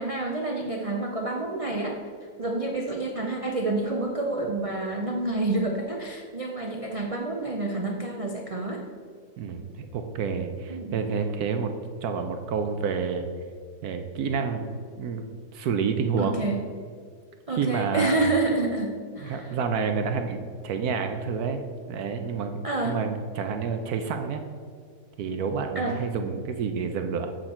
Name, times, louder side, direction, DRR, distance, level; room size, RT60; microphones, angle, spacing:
voice 1, 0.0-2.0 2.4-8.8 10.7-11.0 16.2-16.6 17.5-19.5 22.6-23.0 25.7-26.0, right 2 dB, 50° right, 1 dB, 0.4 m, -28 dB
voice 2, 9.4-11.7 12.0-13.3 13.8-14.7 14.9-15.2 15.5-16.5 17.5-18.3 19.2-21.6 21.9-22.5 22.8-24.4 25.2-27.3, right 5 dB, 70° right, 6 dB, 1.1 m, -29 dB
7.9 x 6.3 x 4.3 m, 2.1 s
omnidirectional pair, 1.7 m